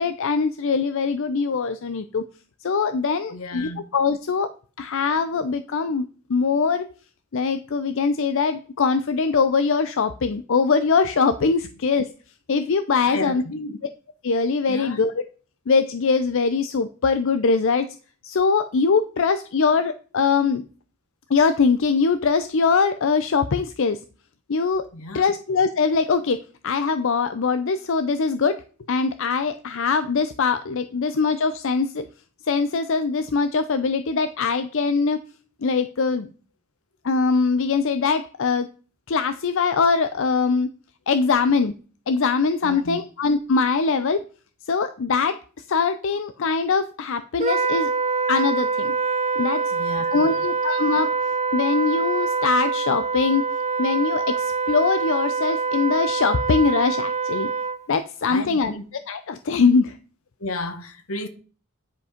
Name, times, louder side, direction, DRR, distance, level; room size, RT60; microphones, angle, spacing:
voice 1, 0.0-2.2 2.6-4.5 4.8-6.9 7.3-12.1 12.5-13.4 14.2-15.1 15.7-17.9 18.2-20.6 21.3-24.0 24.5-24.9 25.1-26.4 26.6-28.6 28.9-32.0 32.5-35.2 35.6-36.3 37.0-38.7 39.1-40.7 41.1-41.7 42.1-44.2 44.7-45.4 45.7-47.9 48.3-48.9 49.4-49.6 50.1-51.1 51.5-53.4 53.8-57.5 57.9-60.0, left 5 dB, 65° left, 0.5 m, -22 dB
voice 2, 3.3-3.8 13.0-13.8 14.7-15.0 24.9-25.3 42.6-43.0 49.7-50.5 58.3-58.9 60.4-61.3, left 2 dB, 85° left, 1.2 m, -33 dB
Wind instrument woodwind instrument, 47.4-57.8, right 5 dB, 30° right, 0.7 m, -25 dB
9.9 x 5.2 x 5.1 m
head